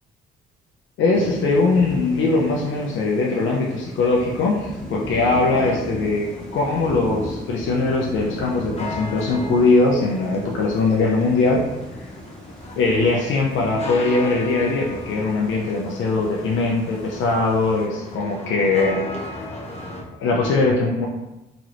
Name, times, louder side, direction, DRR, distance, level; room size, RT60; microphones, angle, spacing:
voice 1, 1.0-11.6 12.8-19.0 19.3-19.5 20.2-21.1, left 3 dB, 75° left, -2 dB, 0.5 m, -21 dB
Thunder / Rain, 1.1-17.9, equal, ahead, 0.8 m, -37 dB
sound 1, 5.3-20.0, left 2 dB, 30° left, 0.7 m, -37 dB
3.1 x 3.0 x 2.5 m, 0.98 s
cardioid pair, 90°, 20 cm